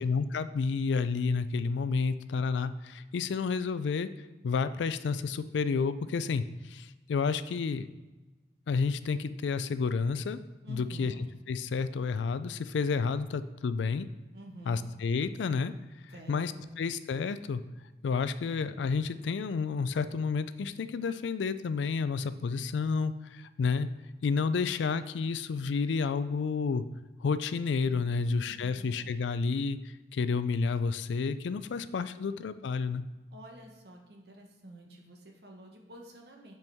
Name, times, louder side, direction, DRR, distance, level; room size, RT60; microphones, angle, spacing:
voice 1, 0.0-4.1 4.4-7.9 8.7-10.4 10.7-11.1 11.5-14.1 14.7-15.7 16.3-16.5 16.8-17.6 18.0-23.9 24.2-26.9 27.2-33.0, left 5 dB, 90° left, 14 dB, 0.4 m, -30 dB
voice 2, 10.6-11.2 14.3-14.9 16.1-16.7 28.0-29.1 31.7-31.9 32.2-32.3 33.3-36.5, right 1 dB, 65° right, 1 dB, 1.1 m, -49 dB
7.8 x 4.5 x 3.5 m, 1.1 s
head